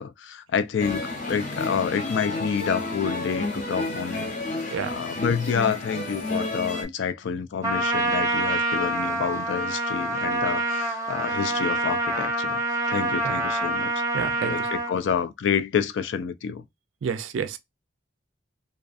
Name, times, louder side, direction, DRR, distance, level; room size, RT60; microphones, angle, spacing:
voice 1, 0.0-13.9 14.4-16.6, left 7 dB, 75° left, 0.4 m, -28 dB
sound 1, 0.8-6.8, left 2 dB, 40° left, 0.7 m, -31 dB
Trumpet, 7.6-14.9, right 2 dB, 15° right, 0.6 m, -26 dB
voice 2, 14.1-14.7 17.0-17.6, right 6 dB, 85° right, 0.4 m, -29 dB
2.4 x 2.4 x 2.4 m
head